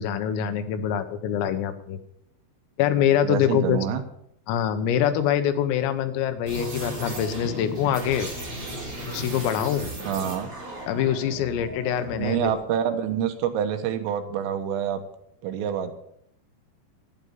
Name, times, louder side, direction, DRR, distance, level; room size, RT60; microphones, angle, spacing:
voice 1, 0.0-2.0 2.8-3.8 4.5-8.3 9.1-9.9 10.9-12.5, left 9 dB, 90° left, 9 dB, 3.8 m, -24 dB
voice 2, 3.2-4.0 10.1-10.5 12.2-15.0 15.4-15.9, right 9 dB, 80° right, 7 dB, 3.9 m, -27 dB
sound 1, 6.5-12.6, equal, 30° right, 6.5 m, -35 dB
11.5 x 9.7 x 7.2 m, 0.71 s
omnidirectional pair, 5.8 m